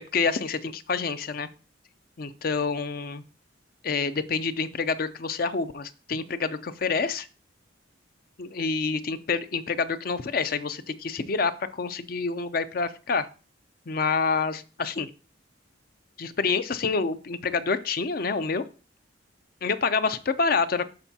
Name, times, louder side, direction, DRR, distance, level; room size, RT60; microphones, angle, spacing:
voice 1, 0.1-1.5 2.2-3.2 3.8-7.3 8.4-13.3 13.9-15.1 16.2-18.6 19.6-20.9, left 4 dB, 50° left, 12 dB, 0.5 m, -27 dB
13.0 x 4.5 x 2.8 m, 0.34 s
head